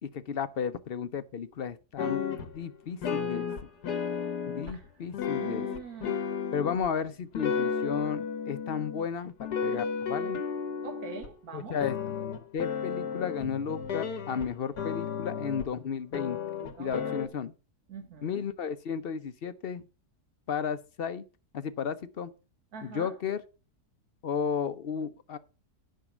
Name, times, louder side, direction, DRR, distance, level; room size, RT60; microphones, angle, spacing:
voice 1, 0.0-2.2 2.5-3.5 4.5-5.7 6.5-9.3 9.6-10.4 11.5-12.0 12.5-16.4 16.8-17.5 18.2-19.8 20.5-21.2 21.5-22.3 22.8-23.4 24.2-25.4, left 7 dB, 55° left, 0.7 m, -33 dB
sound 1, 2.0-2.6 3.0-4.9 5.1-6.9 7.3-9.1 9.4-11.3 11.8-14.5 14.8-15.7 16.1-17.3, left 6 dB, 90° left, 1.8 m, -33 dB
voice 2, 5.4-6.2 10.8-11.8 16.8-17.2 17.9-18.4 22.7-23.1, right 5 dB, 70° right, 2.1 m, -43 dB
10.5 x 5.6 x 6.0 m
omnidirectional pair, 1.7 m